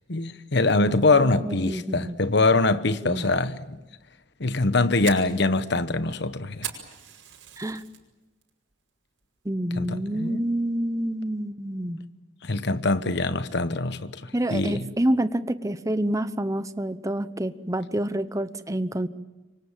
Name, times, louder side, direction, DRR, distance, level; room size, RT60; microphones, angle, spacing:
voice 1, 0.1-3.8 4.4-6.7 9.7-10.4 12.4-14.9, left 3 dB, 60° left, 1.2 m, -23 dB
voice 2, 1.1-2.2 3.0-3.3 7.6-7.8 9.4-12.0 14.3-19.1, right 1 dB, 15° right, 1.0 m, -28 dB
Fire, 4.5-8.0 8.4-8.8 9.2-9.3 9.8-10.2, right 9 dB, 75° right, 5.6 m, -39 dB
27.5 x 24.5 x 7.4 m
head